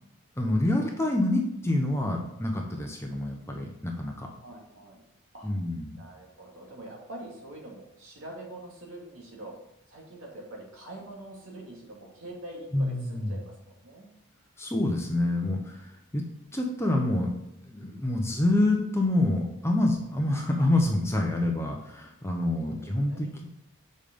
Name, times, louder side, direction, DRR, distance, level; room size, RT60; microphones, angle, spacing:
voice 1, 0.4-4.3 5.4-6.0 12.7-13.4 14.6-16.2 16.5-17.3 17.6-23.4, left 1 dB, 10° left, 1 dB, 0.8 m, -27 dB
voice 2, 4.4-5.0 5.3-5.5 6.0-9.5 9.9-14.1 22.6-23.2, right 1 dB, 60° right, -2 dB, 2.3 m, -44 dB
7.3 x 5.3 x 5.1 m, 0.85 s
head